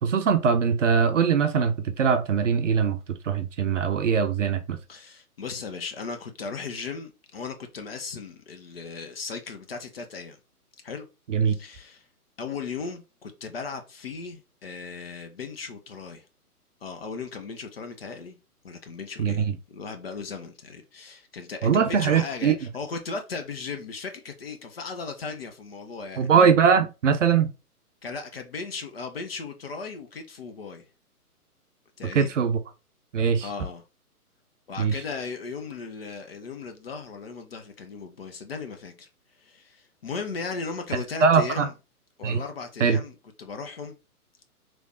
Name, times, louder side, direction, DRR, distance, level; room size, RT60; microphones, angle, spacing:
voice 1, 0.0-3.0 3.2-4.8 11.3-11.6 19.2-19.5 21.6-22.6 26.2-27.5 32.1-32.6 33.1-33.5 34.8-35.0 41.2-41.7 42.2-42.4 42.8-43.0, right 6 dB, 55° right, 0.5 m, -21 dB
voice 2, 4.9-10.4 10.8-11.1 11.5-12.1 12.4-16.3 16.8-18.4 18.6-26.3 28.0-30.9 32.0-32.3 33.4-33.8 34.7-39.1 39.4-41.7 42.2-43.9, left 4 dB, 40° left, 0.6 m, -37 dB
3.2 x 3.1 x 2.6 m
figure-of-eight pair, 130°, 46 cm